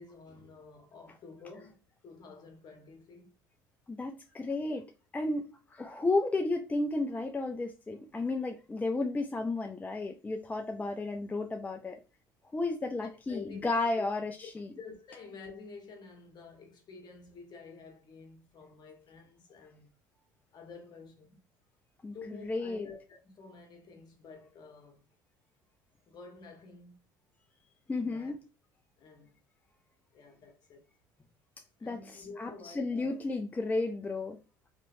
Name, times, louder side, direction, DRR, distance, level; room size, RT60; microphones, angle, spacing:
voice 1, 0.0-3.3 13.0-14.1 14.4-19.9 20.5-21.4 22.1-25.1 26.1-27.0 27.9-28.3 29.0-29.4 30.1-30.9 31.8-33.2, left 4 dB, 45° left, 1.2 m, -50 dB
voice 2, 3.9-12.0 12.5-14.7 22.0-22.2 22.4-22.9 27.9-28.4 31.8-34.4, left 2 dB, 15° left, 0.5 m, -33 dB
3.1 x 3.0 x 2.6 m
hypercardioid pair, 80°, 10 cm